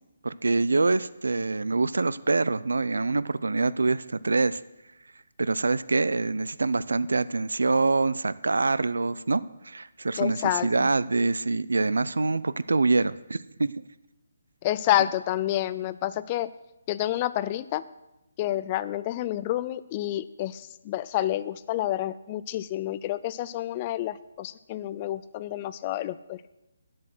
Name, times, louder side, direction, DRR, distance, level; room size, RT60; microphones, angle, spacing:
voice 1, 0.2-4.6 5.4-13.8, right 3 dB, 85° right, 18 dB, 0.4 m, -25 dB
voice 2, 10.2-10.9 14.6-16.5 16.9-17.8 18.4-26.4, left 13 dB, 25° left, 15 dB, 0.3 m, -29 dB
10.5 x 7.4 x 6.1 m, 0.95 s
hypercardioid pair, 160°, 0 cm